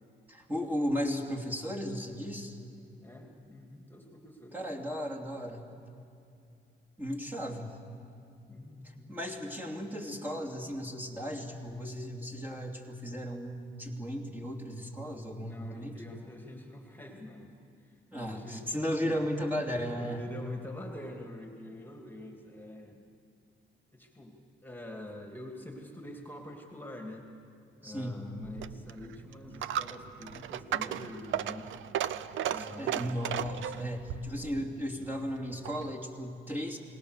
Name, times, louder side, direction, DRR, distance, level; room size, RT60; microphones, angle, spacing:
voice 1, 0.3-2.6 4.5-5.7 7.0-7.8 9.1-16.0 18.1-20.2 27.8-28.2 32.5-36.8, equal, 10° right, -2 dB, 2.8 m, -35 dB
voice 2, 3.0-4.6 8.5-9.2 15.4-17.5 17.8-18.6 19.0-19.2 20.0-23.0 23.9-27.3 27.8-31.7 32.5-33.1, left 1 dB, 10° left, 1 dB, 2.7 m, -45 dB
Coin (dropping), 28.4-35.9, right 10 dB, 75° right, 0.7 m, -36 dB
29.5 x 19.0 x 6.7 m, 2.5 s
cardioid pair, 90°, 20 cm